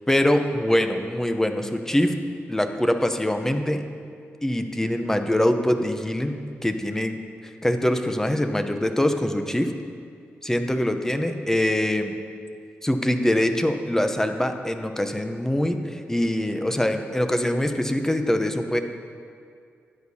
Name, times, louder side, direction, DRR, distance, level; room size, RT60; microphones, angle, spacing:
voice 1, 0.1-2.1 2.5-3.9 4.4-9.7 10.4-12.1 12.8-18.8, left 1 dB, 10° left, 7 dB, 0.7 m, -24 dB
13.0 x 9.6 x 2.8 m, 2.3 s
cardioid pair, 70°, 5 cm